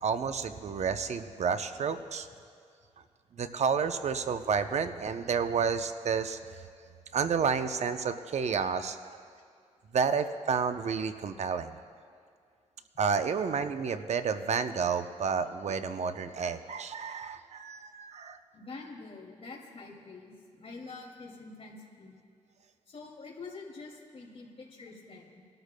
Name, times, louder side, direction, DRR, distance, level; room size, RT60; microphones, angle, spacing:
voice 1, 0.0-2.3 3.4-6.4 7.1-9.2 9.9-11.8 13.0-18.4, right 6 dB, 60° right, 9 dB, 0.7 m, -30 dB
voice 2, 18.5-22.2 22.9-25.3, left 3 dB, 50° left, -1 dB, 2.5 m, -46 dB
22.0 x 13.0 x 2.2 m, 2.2 s
cardioid pair, 85°, 13 cm